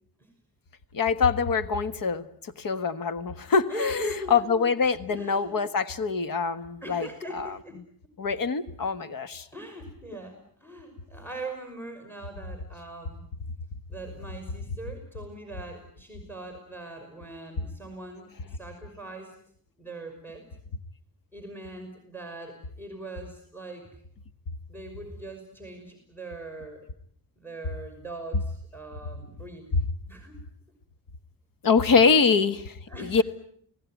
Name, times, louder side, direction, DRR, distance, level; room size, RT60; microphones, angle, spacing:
voice 1, 0.9-7.6 8.2-9.5 28.3-28.4 29.7-29.8 31.6-33.2, left 5 dB, 65° left, 13 dB, 1.6 m, -24 dB
voice 2, 3.7-4.7 5.1-5.6 6.8-7.8 9.4-13.2 13.9-19.3 19.8-20.5 21.3-23.9 24.7-26.9 27.4-29.7 30.1-30.4 32.9-33.2, right 2 dB, 5° left, 5 dB, 5.8 m, -41 dB
30.0 x 18.5 x 9.3 m, 0.64 s
wide cardioid pair, 115°, 37 cm